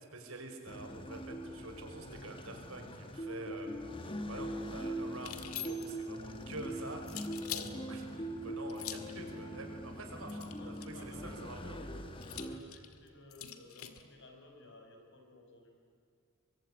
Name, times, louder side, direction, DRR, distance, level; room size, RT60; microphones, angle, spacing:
voice 1, 0.1-7.0 7.5-11.8, right 2 dB, 75° right, 4 dB, 5.1 m, -47 dB
sound 1, 0.7-12.6, equal, 25° left, 1.7 m, -42 dB
sound 2, 5.2-6.1 7.1-7.7 8.7-9.2 10.3-11.0 12.2-14.0, left 11 dB, 85° left, 1.9 m, -44 dB
voice 2, 10.1-15.8, left 2 dB, 60° left, 3 dB, 5.7 m, -56 dB
23.5 x 23.5 x 9.9 m, 2.4 s
head